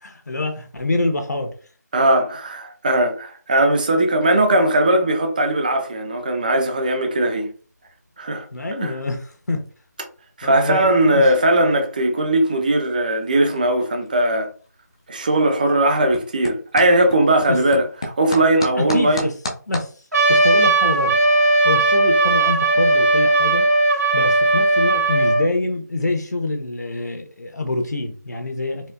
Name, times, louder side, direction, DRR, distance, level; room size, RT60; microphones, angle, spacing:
voice 1, 0.0-1.5 8.5-9.6 10.4-11.3 17.5-17.6 18.8-19.3 19.7-19.9 20.3-21.2 21.6-23.7 24.1-28.9, left 2 dB, 65° left, 1.0 m, -25 dB
voice 2, 1.9-7.5 8.2-8.5 8.8-8.9 10.4-14.5 15.1-19.3, right 1 dB, 25° right, 0.7 m, -19 dB
sound 1, 7.2-19.9, left 1 dB, 15° left, 0.4 m, -37 dB
Trumpet, 20.1-25.4, right 2 dB, 60° right, 1.3 m, -17 dB
4.2 x 2.5 x 2.3 m
figure-of-eight pair, 165°, 10 cm